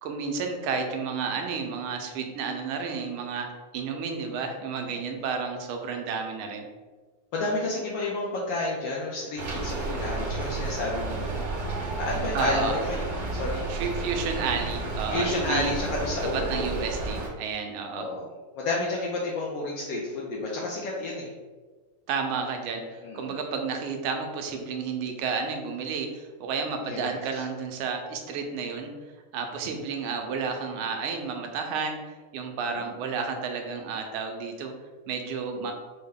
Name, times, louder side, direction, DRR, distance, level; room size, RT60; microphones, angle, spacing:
voice 1, 0.0-3.5 3.7-6.7 12.3-12.7 13.7-15.7 16.3-18.1 22.1-28.9 29.3-32.0 32.3-34.7 35.1-35.7, right 5 dB, 90° right, 4 dB, 1.4 m, -31 dB
voice 2, 7.3-11.3 12.0-13.1 13.3-13.6 15.1-16.6 17.9-18.2 18.6-21.3 23.0-23.3 26.8-27.2 32.7-32.9, left 2 dB, 75° left, -3 dB, 1.2 m, -30 dB
Rain, 9.4-17.3, right 3 dB, 55° right, 1.6 m, -32 dB
5.3 x 2.1 x 3.4 m, 1.4 s
omnidirectional pair, 2.3 m